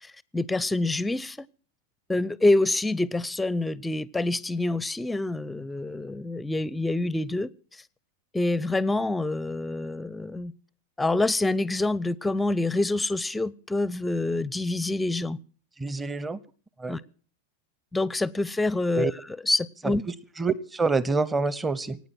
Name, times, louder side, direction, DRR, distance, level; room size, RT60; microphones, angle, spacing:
voice 1, 0.0-1.5 2.1-7.5 8.3-10.5 11.0-15.4 16.9-17.0 17.9-20.0, left 2 dB, 10° left, 0.7 m, -26 dB
voice 2, 15.8-16.4 16.8-17.0 19.0-19.1 19.8-19.9 20.4-22.0, right 4 dB, 10° right, 1.0 m, -26 dB
24.0 x 9.6 x 6.1 m
figure-of-eight pair, 90°, 0 cm